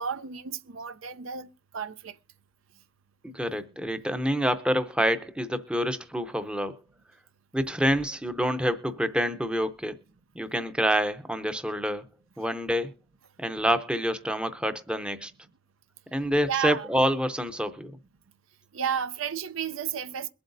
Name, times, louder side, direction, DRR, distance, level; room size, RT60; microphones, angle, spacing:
voice 1, 0.0-2.1 16.5-16.9 18.7-20.3, right 8 dB, 80° right, 0.6 m, -32 dB
voice 2, 3.2-6.8 7.5-10.0 10.3-12.1 12.4-12.9 13.4-15.3 16.1-17.9, equal, 5° right, 0.6 m, -27 dB
22.0 x 7.8 x 2.6 m
head